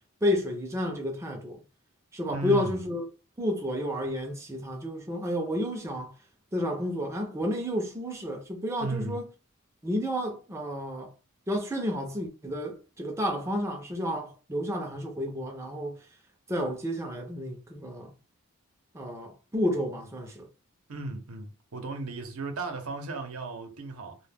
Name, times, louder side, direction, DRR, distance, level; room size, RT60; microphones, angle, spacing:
voice 1, 0.2-1.6 2.1-3.1 3.4-6.1 6.5-9.2 9.8-11.1 11.5-16.0 16.5-18.1 18.9-20.5, equal, 15° right, 0.4 m, -31 dB
voice 2, 2.3-2.8 8.8-9.2 20.9-24.2, right 2 dB, 85° right, 0.7 m, -35 dB
2.2 x 2.2 x 3.3 m
head